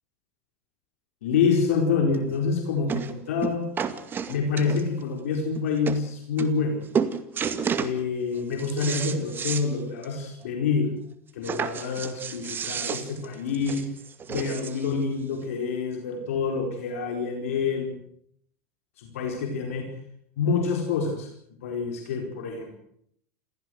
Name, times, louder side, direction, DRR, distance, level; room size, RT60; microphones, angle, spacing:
voice 1, 1.2-3.7 4.3-6.8 7.8-10.9 11.3-13.8 14.3-17.9 19.0-19.9 20.4-21.3 21.6-22.7, left 5 dB, 90° left, 3 dB, 4.7 m, -27 dB
sound 1, 2.1-2.2 2.9-3.1 3.4-5.0 5.6-5.7 5.9-6.0 6.4-6.7 6.9-8.0 8.4-9.7 10.0-10.1 10.4-10.5 11.4-14.9 15.7-15.8, right 7 dB, 30° right, 2.2 m, -31 dB
28.0 x 15.5 x 8.0 m, 0.69 s
supercardioid pair, 115°, 7 cm